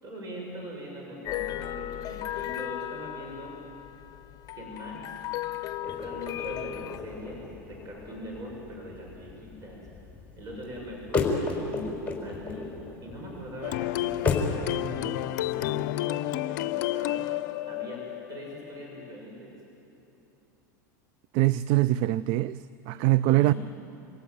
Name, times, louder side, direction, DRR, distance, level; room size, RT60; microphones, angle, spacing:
voice 1, 0.0-3.6 4.5-5.2 5.8-9.8 10.4-12.7 13.0-17.3 17.7-19.5 22.9-23.6, equal, 35° right, 6.9 m, -42 dB
sound 1, 1.2-7.0, left 14 dB, 35° left, 1.0 m, -36 dB
sound 2, 5.8-14.6, left 4 dB, 15° left, 5.1 m, -34 dB
sound 3, 13.6-19.1, left 16 dB, 65° left, 0.6 m, -31 dB
voice 2, 21.3-22.6 22.9-23.5, right 16 dB, 55° right, 0.5 m, -23 dB
27.5 x 17.0 x 9.5 m
hypercardioid pair, 110°, 10 cm